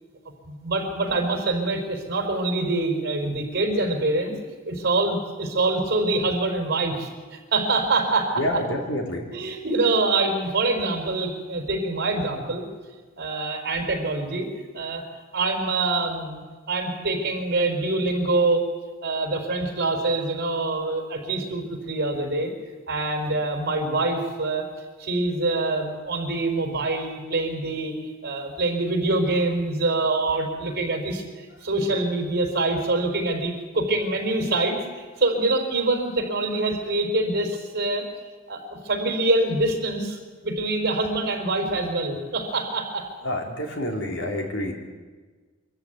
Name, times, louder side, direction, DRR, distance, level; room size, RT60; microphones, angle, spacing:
voice 1, 0.5-4.4 4.7-8.6 9.3-12.6 13.2-14.5 14.7-15.0 15.3-18.7 19.0-22.5 22.9-24.6 25.0-27.9 28.2-38.1 38.5-40.2 40.4-43.1, right 2 dB, 50° right, 3 dB, 4.5 m, -25 dB
voice 2, 8.3-9.3 43.2-44.7, left 1 dB, 65° left, 2 dB, 3.6 m, -28 dB
24.5 x 14.0 x 9.4 m, 1.4 s
head